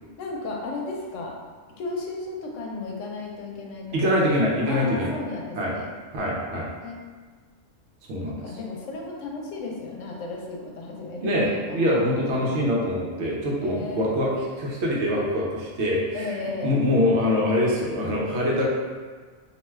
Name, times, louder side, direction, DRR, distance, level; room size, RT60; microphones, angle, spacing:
voice 1, 0.2-1.3 1.8-4.3 4.7-5.9 6.5-7.0 8.2-12.0 12.4-12.6 13.6-14.1 16.1-16.7, left 3 dB, 80° left, -1 dB, 0.9 m, -34 dB
voice 2, 3.9-5.1 5.6-5.7 6.1-6.7 8.1-8.4 11.2-16.3 16.6-18.6, left 1 dB, 70° right, -4 dB, 0.9 m, -24 dB
2.5 x 2.2 x 3.1 m, 1.5 s
omnidirectional pair, 1.3 m